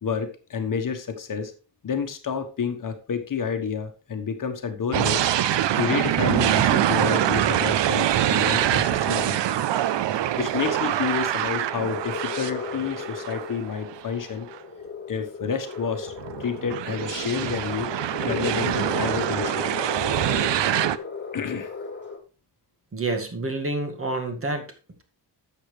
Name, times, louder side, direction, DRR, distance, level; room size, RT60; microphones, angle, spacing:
voice 1, 0.0-1.5 1.8-5.2 5.7-9.6 10.4-14.5 15.1-16.1 16.4-17.9 18.2-19.8 21.3-21.7, left 6 dB, 50° left, 7 dB, 1.3 m, -29 dB
sound 1, 4.8-22.2, left 5 dB, 25° left, 2.1 m, -37 dB
sound 2, 4.9-14.0 14.5-14.6 16.1-21.0, right 11 dB, 85° right, 0.7 m, -24 dB
voice 2, 22.9-24.7, right 2 dB, 30° right, 5 dB, 1.9 m, -28 dB
11.5 x 7.3 x 3.3 m, 0.34 s
wide cardioid pair, 135°, 42 cm